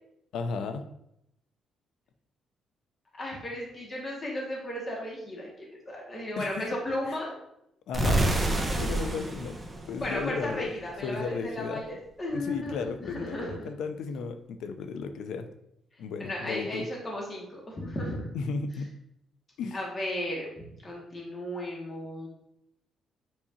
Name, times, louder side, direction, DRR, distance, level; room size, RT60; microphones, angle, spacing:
voice 1, 0.3-0.9 6.4-6.7 7.1-7.2 7.9-8.4 8.8-9.6 9.9-10.7 11.0-11.8 12.3-15.5 16.0-16.9 18.3-18.9 19.6-19.8, left 5 dB, 80° left, 8 dB, 0.6 m, -34 dB
voice 2, 3.1-7.4 10.0-13.7 15.9-18.3 19.7-22.3, left 1 dB, 30° left, -3 dB, 1.9 m, -35 dB
sound 1, 7.9-10.8, right 1 dB, 20° right, 1.1 m, -28 dB
7.4 x 4.9 x 2.8 m, 0.79 s
cardioid pair, 90°, 0 cm